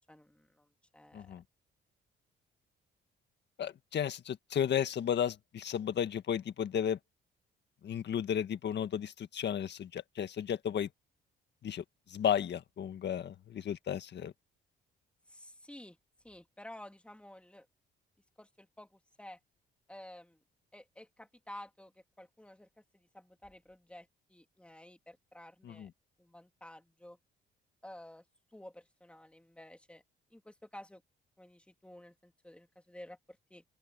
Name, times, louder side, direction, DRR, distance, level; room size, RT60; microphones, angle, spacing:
voice 1, 0.0-1.3 15.3-16.0 16.2-17.7 18.4-19.4 19.9-20.4 20.7-25.9 26.2-27.2 27.8-28.2 28.5-30.0 30.3-31.0 31.4-33.6, left 1 dB, 5° left, 3.1 m, -52 dB
voice 2, 1.1-1.4 3.6-7.0 7.8-10.9 11.6-14.3 25.6-25.9, left 9 dB, 60° left, 1.7 m, -34 dB
cardioid pair, 90°, 20 cm